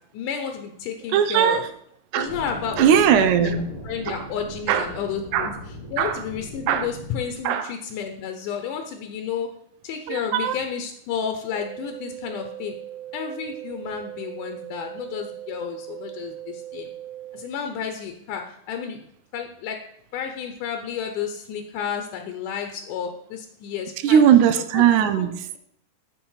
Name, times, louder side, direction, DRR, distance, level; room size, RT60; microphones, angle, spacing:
voice 1, 0.1-1.6 2.2-2.8 3.2-3.3 3.8-9.5 9.8-12.8 13.1-16.9 17.3-19.1 19.3-19.8 20.1-24.2 24.7-24.8 25.1-25.6, left 7 dB, 80° left, 6 dB, 2.2 m, -31 dB
voice 2, 1.1-1.6 2.1-2.3 2.8-3.7 4.1-4.2 4.7-4.9 5.3-5.5 6.0-6.2 6.7-6.9 7.5-7.7 10.1-10.6 24.0-25.4, right 9 dB, 75° right, 12 dB, 1.9 m, -19 dB
sound 1, 2.2-7.3, equal, 15° right, 1.1 m, -39 dB
sound 2, 11.5-17.5, right 12 dB, 60° right, 1.3 m, -39 dB
7.2 x 6.9 x 5.5 m, 0.72 s
omnidirectional pair, 3.7 m